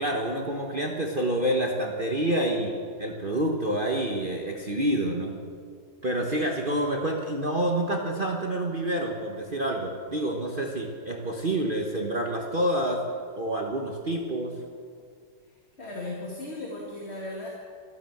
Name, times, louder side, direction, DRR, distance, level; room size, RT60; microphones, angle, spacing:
voice 1, 0.0-5.3 6.0-13.0 13.4-14.5, right 1 dB, 35° right, 1 dB, 1.2 m, -28 dB
voice 2, 15.5-17.5, left 2 dB, 35° left, -3 dB, 2.3 m, -37 dB
13.5 x 13.0 x 7.9 m, 2.1 s
omnidirectional pair, 1.9 m